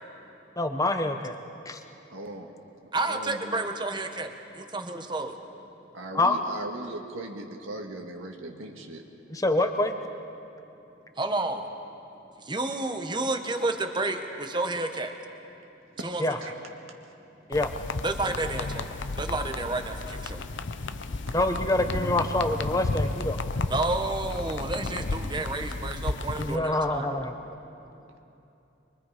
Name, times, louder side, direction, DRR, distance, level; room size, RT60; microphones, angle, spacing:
voice 1, 0.6-1.3 1.6-1.8 6.1-6.3 9.3-9.9 16.2-16.4 17.5-17.7 21.3-23.4 26.4-27.3, left 2 dB, 15° left, 6 dB, 0.9 m, -26 dB
voice 2, 2.1-2.6 3.1-3.6 5.9-9.0 16.1-16.5 20.9-21.0 21.3-21.4, right 1 dB, 85° right, 3 dB, 1.8 m, -39 dB
voice 3, 2.9-5.4 11.2-11.7 12.4-15.2 16.0-16.4 18.0-20.4 23.7-27.2, right 2 dB, 20° right, 6 dB, 1.1 m, -30 dB
sound 1, 17.5-26.6, left 3 dB, 65° left, 0.7 m, -33 dB
24.0 x 23.5 x 5.1 m, 2.8 s
head